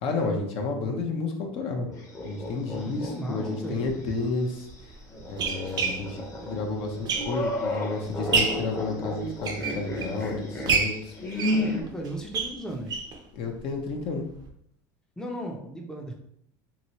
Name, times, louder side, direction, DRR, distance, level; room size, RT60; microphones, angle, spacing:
voice 1, 0.0-1.9 2.2-4.9 5.3-11.1 13.3-14.2, left 3 dB, 60° left, 2 dB, 0.7 m, -31 dB
sound 1, 1.9-3.5 3.9-4.0 5.1-11.8, left 1 dB, 25° left, 0.8 m, -32 dB
voice 2, 2.7-4.0 11.3-13.0 15.2-16.1, right 1 dB, 5° left, 0 dB, 0.5 m, -36 dB
sound 2, 3.8-3.9 4.7-7.7 8.1-8.7 9.2-10.2 10.7-13.2 13.6-13.7 13.9-14.0 14.4-14.5, right 5 dB, 40° right, 0.6 m, -29 dB
2.9 x 2.7 x 2.9 m, 0.70 s
supercardioid pair, 100°, 11 cm